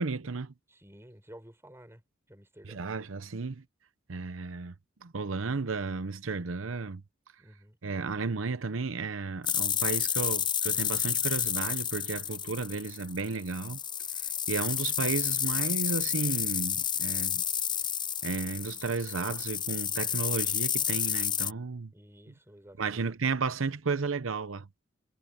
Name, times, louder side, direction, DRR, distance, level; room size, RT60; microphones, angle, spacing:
voice 1, 0.0-0.5 2.7-3.6 4.1-4.7 5.0-7.0 7.8-13.8 14.2-17.4 18.2-21.9 22.8-24.7, right 4 dB, 85° right, 0.8 m, -33 dB
voice 2, 0.7-2.0 2.3-2.8 7.4-7.8 21.9-23.1, equal, 15° right, 6.7 m, -52 dB
sound 1, 9.4-21.5, left 8 dB, 25° left, 0.7 m, -30 dB
head